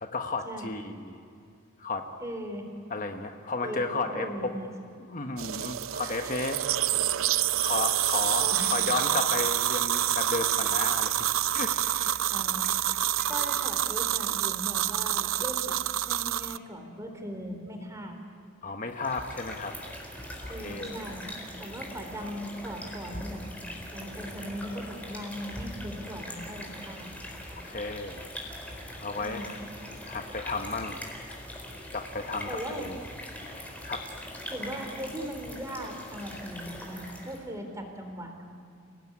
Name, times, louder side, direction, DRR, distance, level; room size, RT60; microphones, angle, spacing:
voice 1, 0.0-1.2 1.8-2.0 2.9-4.5 5.1-6.6 7.6-11.3 11.5-12.1 18.6-19.7 20.4-21.0 27.5-28.3 29.0-29.6 30.0-31.0 31.9-33.0 33.4-34.0, left 3 dB, 40° left, 5 dB, 1.3 m, -33 dB
voice 2, 2.2-2.7 3.6-4.7 6.0-6.4 8.4-8.9 11.6-11.9 12.3-13.0 13.3-18.2 20.5-21.3 21.6-23.4 23.9-27.1 29.2-29.5 32.5-33.0 34.5-38.3, equal, 15° right, 4 dB, 4.0 m, -39 dB
sound 1, 5.4-16.6, right 12 dB, 85° right, 0.6 m, -27 dB
sound 2, 8.6-13.7, right 3 dB, 50° right, 4.8 m, -51 dB
sound 3, 18.9-37.5, left 1 dB, 5° left, 4.3 m, -41 dB
29.5 x 18.5 x 9.9 m, 2.4 s
head